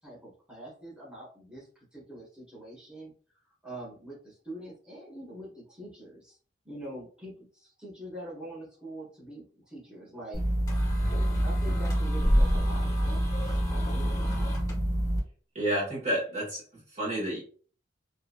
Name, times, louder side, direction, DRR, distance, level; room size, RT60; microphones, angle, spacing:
voice 1, 0.0-3.1 3.6-6.4 6.6-10.4 11.4-14.3, right 1 dB, 5° right, -6 dB, 1.2 m, -44 dB
sound 1, 10.3-15.2, equal, 20° left, 1.4 m, -26 dB
voice 2, 15.5-17.4, right 1 dB, 40° right, -6 dB, 1.4 m, -30 dB
2.9 x 2.7 x 2.4 m, 0.41 s
head